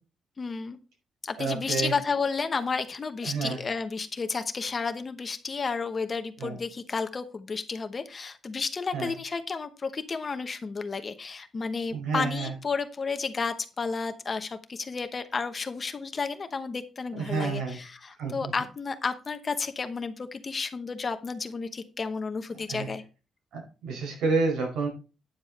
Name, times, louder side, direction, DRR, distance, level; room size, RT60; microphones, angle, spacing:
voice 1, 0.4-0.8 1.2-23.0, left 4 dB, 30° left, 9 dB, 1.0 m, -32 dB
voice 2, 1.4-1.9 3.2-3.6 6.4-6.6 8.9-9.1 11.9-12.5 17.1-17.8 18.2-18.5 22.7-22.9 23.5-24.9, right 4 dB, 90° right, 1 dB, 5.2 m, -29 dB
9.7 x 7.1 x 4.2 m, 0.32 s
cardioid pair, 145°, 0 cm